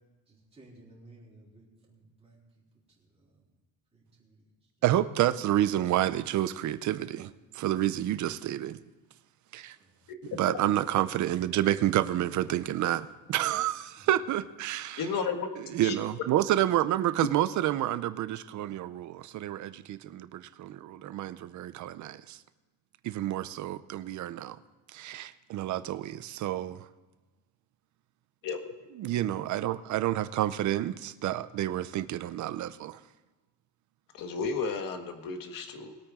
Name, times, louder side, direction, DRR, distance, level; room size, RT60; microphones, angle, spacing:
voice 1, 0.3-3.4 3.9-4.7 9.8-10.0 14.1-14.2, right 2 dB, 15° right, 3.6 m, -57 dB
voice 2, 4.8-8.8 9.5-9.8 10.4-15.0 15.7-22.4 23.0-24.6 24.9-26.9 29.0-33.0, right 13 dB, 45° right, 0.6 m, -29 dB
voice 3, 15.0-16.0 28.4-28.7 34.1-36.0, left 5 dB, 50° left, 1.6 m, -33 dB
21.5 x 8.8 x 3.7 m
cardioid pair, 175°, 42 cm